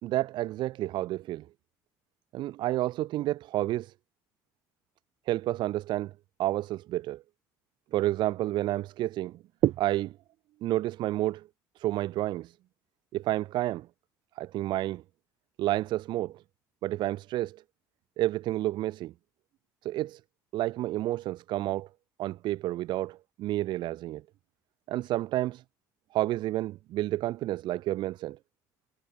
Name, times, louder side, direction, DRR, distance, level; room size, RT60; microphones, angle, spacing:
voice 1, 0.0-1.5 2.3-3.9 5.3-6.1 6.4-7.2 7.9-10.2 10.6-11.5 11.8-12.6 13.1-13.9 14.4-15.0 15.6-16.4 16.8-17.6 18.2-19.1 19.8-20.2 20.5-21.9 22.2-24.2 24.9-25.6 26.1-28.4, right 15 dB, 70° right, 2.0 m, -30 dB
supercardioid pair, 85°, 8 cm